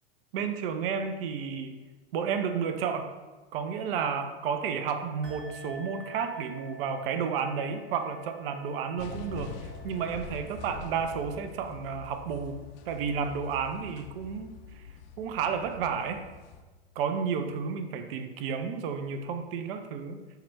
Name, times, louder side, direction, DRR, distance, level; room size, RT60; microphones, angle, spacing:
voice 1, 0.3-1.8 2.1-3.1 3.5-12.6 12.9-14.8 15.2-16.2 17.0-20.2, right 6 dB, 65° right, 8 dB, 0.5 m, -32 dB
sound 1, 5.2-13.4, right 3 dB, 35° right, 0.8 m, -49 dB
sound 2, 9.0-16.6, left 5 dB, 45° left, 0.4 m, -45 dB
5.5 x 2.2 x 3.1 m, 1.2 s
hypercardioid pair, 100°, 31 cm